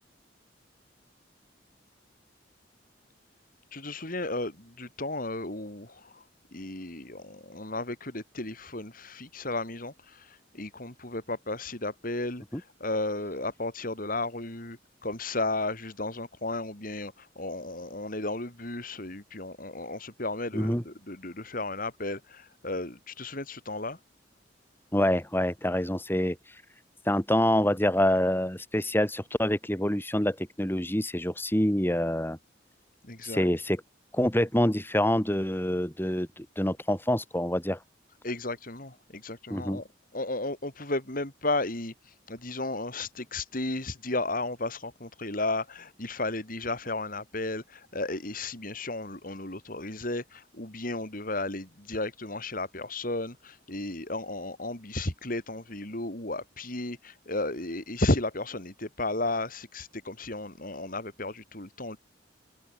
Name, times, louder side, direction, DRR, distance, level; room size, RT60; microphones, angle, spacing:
voice 1, 3.7-6.2 6.5-24.0 33.0-33.5 38.2-39.9 40.1-41.9 42.3-62.0, left 2 dB, 50° left, 4.2 m, -34 dB
voice 2, 20.5-20.8 24.9-26.4 27.1-32.4 33.2-33.8 34.1-37.8 39.5-39.8, left 1 dB, 10° left, 3.5 m, -26 dB
head